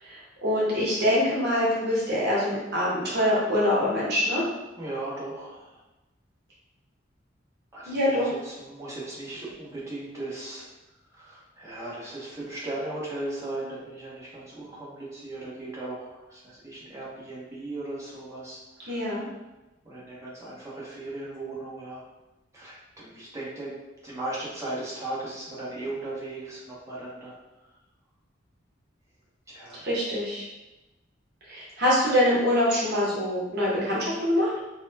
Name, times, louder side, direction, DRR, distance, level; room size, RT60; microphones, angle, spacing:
voice 1, 0.0-4.4 7.9-8.3 18.9-19.2 29.8-30.5 31.5-34.5, left 1 dB, 60° right, -7 dB, 1.0 m, -24 dB
voice 2, 4.8-5.8 7.7-10.6 11.1-19.0 19.8-22.0 22.5-23.8 24.0-27.3 29.5-29.8, right 2 dB, 15° right, -7 dB, 1.0 m, -37 dB
3.9 x 2.2 x 2.7 m, 1.0 s
head